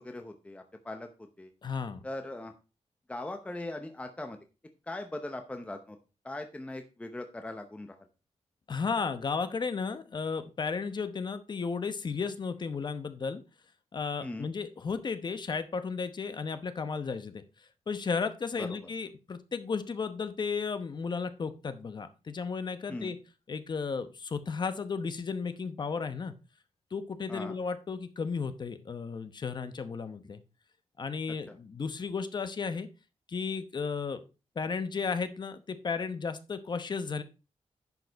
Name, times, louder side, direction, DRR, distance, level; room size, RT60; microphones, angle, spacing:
voice 1, 0.0-1.5 2.0-2.5 3.1-4.4 4.9-6.0 6.2-8.0 14.2-14.5 18.6-18.8 22.9-23.1 27.3-27.6, left 2 dB, 10° left, 6 dB, 0.8 m, -40 dB
voice 2, 1.6-2.1 8.7-13.4 13.9-23.2 23.5-26.3 26.9-30.4 31.0-32.9 33.3-34.2 34.5-37.2, left 5 dB, 40° left, 11 dB, 0.9 m, -34 dB
11.0 x 5.4 x 4.6 m, 0.30 s
wide cardioid pair, 175°, 11 cm